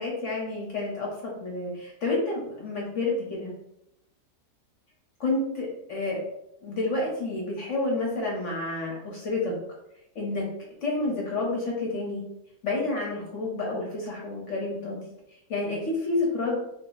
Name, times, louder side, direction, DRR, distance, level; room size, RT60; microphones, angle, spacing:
voice 1, 0.0-3.5 5.2-6.2 6.6-9.5 10.1-10.5 10.8-12.2 12.6-15.0 15.5-16.6, left 2 dB, 55° left, -3 dB, 0.9 m, -29 dB
2.7 x 2.3 x 3.8 m, 0.82 s
omnidirectional pair, 1.7 m